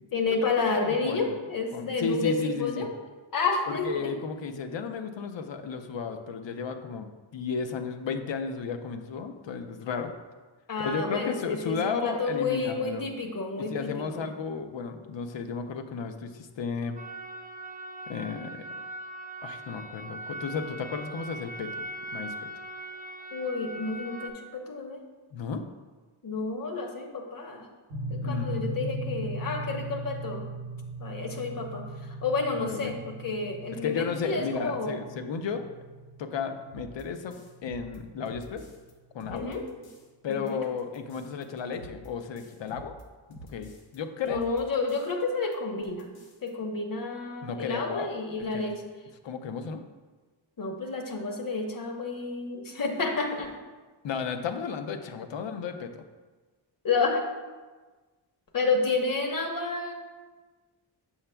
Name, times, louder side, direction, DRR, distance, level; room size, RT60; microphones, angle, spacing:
voice 1, 0.1-2.9 3.3-4.1 10.7-14.3 23.3-25.0 26.2-27.7 28.1-30.4 31.0-31.8 32.2-35.0 39.3-39.6 40.3-40.6 44.2-46.1 46.4-48.8 50.6-53.5 56.8-57.2 58.5-59.9, left 4 dB, 45° left, 3 dB, 1.0 m, -30 dB
voice 2, 0.8-1.3 1.7-2.9 3.7-10.1 10.8-13.1 13.7-17.0 18.1-18.6 19.4-22.5 25.3-25.6 28.2-29.0 32.5-32.9 33.8-35.7 36.2-37.3 37.6-38.7 39.1-39.5 40.2-43.0 43.5-44.5 47.4-48.1 48.5-48.6 49.2-49.8 54.0-56.0, left 5 dB, 65° left, 7 dB, 0.7 m, -33 dB
sound 1, 17.0-24.3, right 1 dB, 20° right, 0.6 m, -40 dB
sound 2, 27.9-38.1, right 1 dB, 60° right, 0.8 m, -39 dB
sound 3, 36.7-38.9 39.2-40.1 40.3-44.0 44.3-45.2 45.5-45.6 45.8-46.5, right 1 dB, 85° left, 1.1 m, -48 dB
7.2 x 6.8 x 2.2 m, 1.3 s
wide cardioid pair, 115°, 47 cm